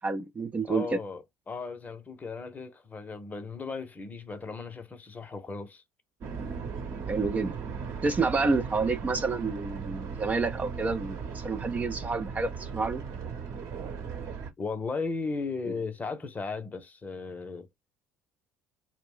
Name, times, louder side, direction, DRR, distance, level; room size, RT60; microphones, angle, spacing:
voice 1, 0.0-1.0 7.1-7.5 8.0-13.0, right 4 dB, 25° right, 0.4 m, -29 dB
voice 2, 0.6-5.8 14.6-17.7, left 4 dB, 25° left, 0.7 m, -36 dB
sound 1, 6.2-14.5, right 6 dB, 50° right, 1.0 m, -37 dB
2.3 x 2.1 x 3.6 m
hypercardioid pair, 60°, 6 cm